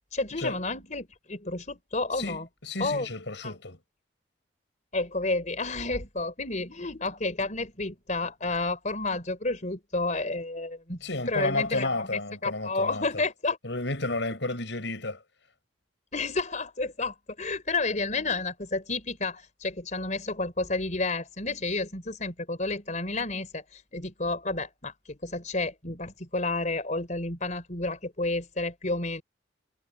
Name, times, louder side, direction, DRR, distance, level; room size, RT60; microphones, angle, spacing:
voice 1, 0.1-2.5 2.8-3.1 3.4-3.5 4.9-11.0 11.3-13.6 16.1-29.2, left 3 dB, 40° left, 4.1 m, -31 dB
voice 2, 2.2-3.8 11.0-13.2 13.6-15.2, left 2 dB, 70° left, 6.5 m, -31 dB
head